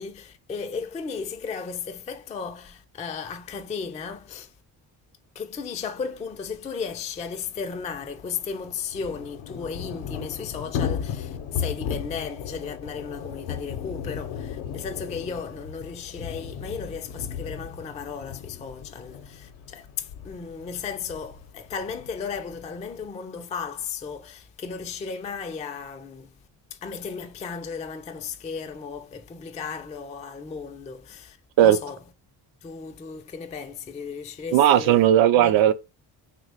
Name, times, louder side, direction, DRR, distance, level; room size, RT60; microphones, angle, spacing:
voice 1, 0.0-4.5 5.4-26.3 26.7-32.0 32.6-35.0 35.3-35.6, left 5 dB, 15° left, 0.3 m, -35 dB
Thunder / Rain, 6.5-6.6 6.8-6.9 7.2-23.1, left 8 dB, 70° left, 0.6 m, -36 dB
voice 2, 34.5-35.7, right 11 dB, 70° right, 0.5 m, -16 dB
2.9 x 2.2 x 4.0 m
supercardioid pair, 55°, 50 cm